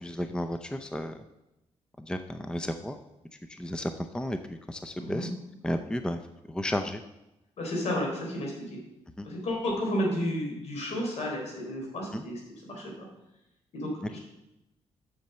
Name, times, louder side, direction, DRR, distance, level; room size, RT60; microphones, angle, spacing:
voice 1, 0.0-1.1 2.1-3.0 3.5-4.4 4.7-5.3 5.6-6.2 6.5-7.0 9.2-9.3 12.1-12.2, left 1 dB, 5° left, 8 dB, 0.6 m, -32 dB
voice 2, 5.0-5.3 7.6-8.8 9.2-13.1 13.7-14.2, equal, 70° left, 0 dB, 3.8 m, -32 dB
7.5 x 6.6 x 6.8 m, 0.92 s
cardioid pair, 95°, 12 cm